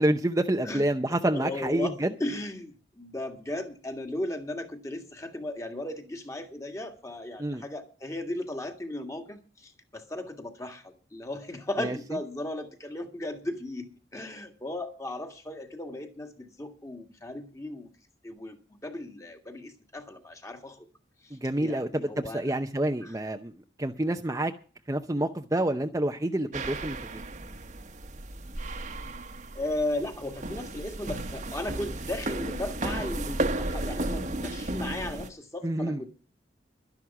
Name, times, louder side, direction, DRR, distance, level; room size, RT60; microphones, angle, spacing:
voice 1, 0.0-2.1 7.4-7.6 11.8-12.0 21.3-23.5 23.8-24.5 24.9-27.2 35.6-36.1, right 1 dB, 20° right, 0.7 m, -28 dB
voice 2, 1.3-1.9 2.2-17.9 18.2-18.6 18.8-20.8 21.6-22.4 23.0-23.1 29.6-36.1, left 1 dB, 20° left, 1.8 m, -36 dB
sound 1, 26.5-35.3, right 1 dB, 45° right, 1.3 m, -34 dB
12.0 x 11.0 x 5.9 m
head